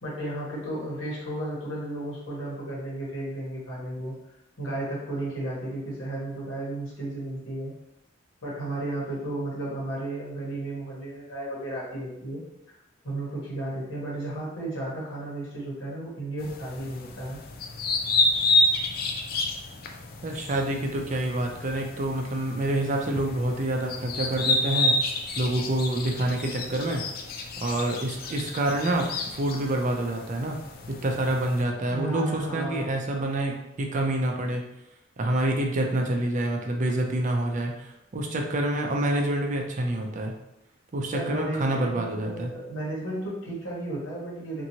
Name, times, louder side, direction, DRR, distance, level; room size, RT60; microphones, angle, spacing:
voice 1, 0.0-4.1 4.6-7.7 8.4-12.8 13.0-17.4 31.9-32.9 41.1-44.7, right 1 dB, 85° left, -6 dB, 1.3 m, -33 dB
sound 1, 16.4-31.6, left 2 dB, 50° left, 0.3 m, -30 dB
voice 2, 20.2-24.9 25.4-27.0 27.6-30.6 30.9-34.6 35.2-40.3 40.9-42.5, right 1 dB, 40° right, 2 dB, 0.4 m, -27 dB
2.8 x 2.6 x 2.7 m, 0.86 s
head